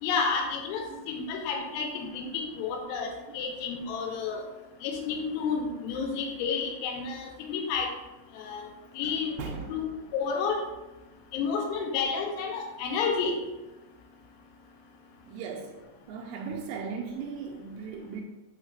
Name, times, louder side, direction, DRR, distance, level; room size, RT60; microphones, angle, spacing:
voice 1, 0.0-4.4 4.8-7.9 8.3-8.7 9.0-9.3 9.7-9.8 10.1-10.6 11.3-13.4, left 5 dB, 90° left, 2 dB, 3.6 m, -30 dB
voice 2, 1.6-2.5 2.9-3.4 9.0-9.7 15.2-15.8 16.1-18.2, right 5 dB, 85° right, 0 dB, 3.1 m, -39 dB
8.0 x 6.2 x 2.4 m, 1.1 s
omnidirectional pair, 5.9 m